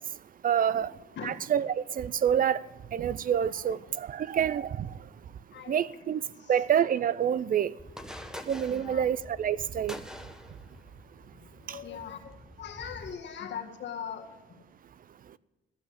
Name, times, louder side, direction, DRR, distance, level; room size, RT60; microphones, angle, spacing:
voice 1, 0.4-0.9 1.2-2.6 2.9-4.9 5.7-6.2 6.5-7.7 8.5-10.0 11.7-11.8, right 9 dB, 45° right, 0.4 m, -27 dB
voice 2, 3.4-3.9 5.5-6.1 6.4-6.6 8.7-9.1 11.3-14.6, left 8 dB, 65° left, 1.9 m, -42 dB
sound 1, 7.8-13.1, equal, 5° right, 0.9 m, -46 dB
15.0 x 5.7 x 8.7 m
cardioid pair, 90°, 20 cm